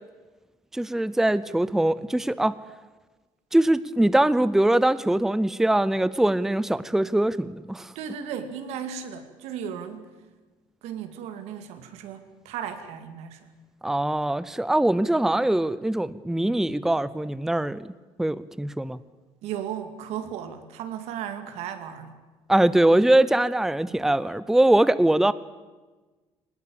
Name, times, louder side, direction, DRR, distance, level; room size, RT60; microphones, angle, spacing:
voice 1, 0.7-2.5 3.5-7.9 13.8-17.8 18.2-19.0 22.5-25.3, right 1 dB, 5° right, 16 dB, 0.6 m, -22 dB
voice 2, 7.9-10.1 10.8-13.5 19.4-22.2, right 8 dB, 80° right, 8 dB, 2.5 m, -35 dB
19.5 x 19.5 x 8.9 m, 1.3 s
cardioid pair, 105°, 11 cm